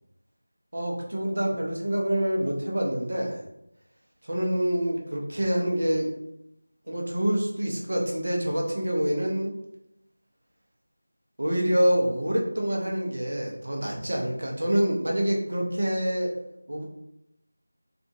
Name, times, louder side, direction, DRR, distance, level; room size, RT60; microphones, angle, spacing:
voice 1, 0.7-3.4 4.2-6.1 6.9-9.5 11.4-16.4 16.7-16.8, equal, 50° right, -1 dB, 0.7 m, -26 dB
3.6 x 2.4 x 2.4 m, 0.83 s
figure-of-eight pair, 170°, 0 cm